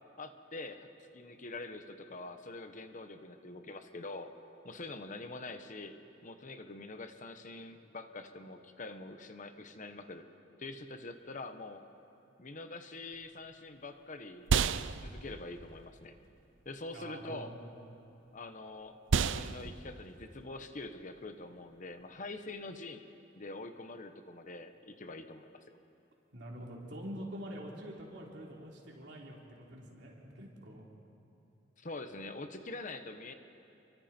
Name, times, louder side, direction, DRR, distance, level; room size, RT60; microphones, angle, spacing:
voice 1, 0.2-0.9 1.1-4.3 4.6-6.0 6.2-10.2 10.6-11.8 12.4-14.5 15.0-16.1 16.6-17.5 18.3-23.0 23.3-25.8 31.8-33.3, left 2 dB, 45° left, 8 dB, 1.1 m, -45 dB
sound 1, 13.1-22.7, right 5 dB, 85° right, 0.6 m, -36 dB
voice 2, 16.9-17.6 26.3-30.9, equal, 65° right, -2 dB, 3.7 m, -45 dB
29.0 x 23.5 x 4.5 m, 3.0 s
head